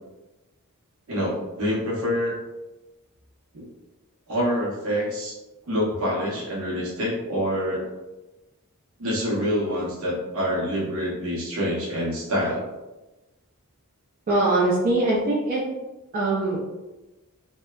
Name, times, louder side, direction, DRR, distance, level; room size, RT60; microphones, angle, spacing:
voice 1, 1.1-2.4 3.5-3.7 4.3-5.4 5.6-7.8 9.0-12.7, equal, 65° right, -4 dB, 0.8 m, -26 dB
voice 2, 14.3-15.6 16.1-16.6, right 2 dB, 40° right, -7 dB, 0.4 m, -22 dB
2.7 x 2.1 x 2.2 m, 1.1 s
head